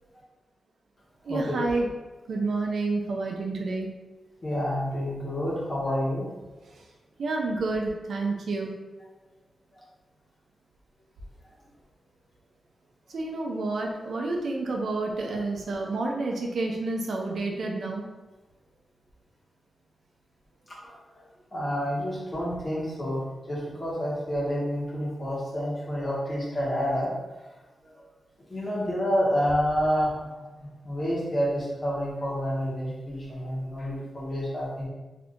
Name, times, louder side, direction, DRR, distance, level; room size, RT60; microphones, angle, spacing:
voice 1, 1.3-1.9 2.3-3.9 6.7-6.8 7.2-8.7 13.1-18.0, right 3 dB, 75° right, 0 dB, 0.5 m, -29 dB
voice 2, 4.4-6.3 20.8-20.9 21.5-23.2 23.5-27.1 27.8-27.9 28.5-30.5 30.8-34.9, equal, 35° left, -7 dB, 1.3 m, -28 dB
2.7 x 2.5 x 3.5 m, 1.1 s
wide cardioid pair, 105°, 0 cm